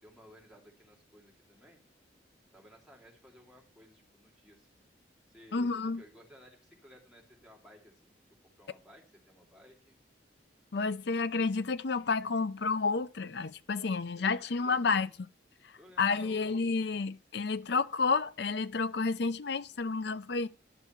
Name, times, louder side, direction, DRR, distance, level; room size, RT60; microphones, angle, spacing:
voice 1, 0.0-1.8 2.5-4.8 5.3-8.1 8.4-10.0 14.2-15.0 15.8-16.9, equal, 5° right, 2.9 m, -57 dB
voice 2, 5.5-6.0 10.7-15.1 16.0-20.5, left 4 dB, 65° left, 0.6 m, -30 dB
11.0 x 6.8 x 4.5 m
head